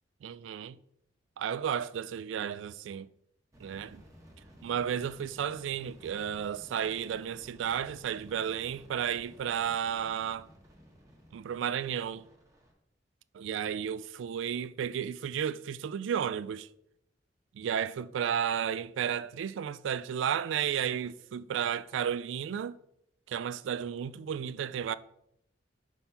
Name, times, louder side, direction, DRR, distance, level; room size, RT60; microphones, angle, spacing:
voice 1, 0.2-0.8 1.4-3.1 3.6-4.0 4.6-10.5 11.3-12.2 13.3-16.7 17.5-22.8 23.3-24.9, right 8 dB, 90° right, 0.3 m, -33 dB
sound 1, 3.5-12.7, equal, 20° right, 1.3 m, -56 dB
5.3 x 4.5 x 5.6 m
head